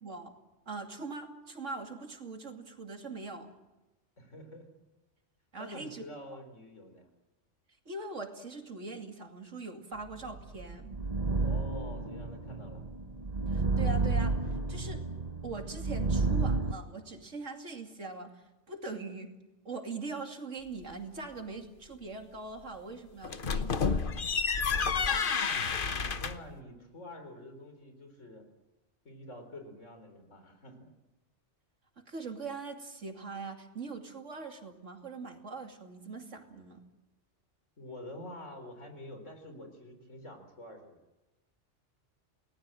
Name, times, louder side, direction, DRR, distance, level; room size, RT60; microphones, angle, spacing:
voice 1, 0.0-0.3 0.7-3.5 5.5-6.0 7.9-10.9 13.5-15.0 15.4-19.3 19.6-24.0 32.1-36.8, right 3 dB, 85° right, 4 dB, 3.0 m, -42 dB
voice 2, 4.2-4.7 5.6-7.1 11.4-12.9 25.0-25.7 26.0-28.4 29.0-30.9 37.8-41.0, left 1 dB, 85° left, 6 dB, 4.6 m, -47 dB
sound 1, 10.3-16.7, right 3 dB, 35° right, 1.1 m, -31 dB
sound 2, 23.2-26.5, left 5 dB, 45° left, 1.1 m, -30 dB
28.5 x 19.0 x 7.8 m, 1.0 s
omnidirectional pair, 1.2 m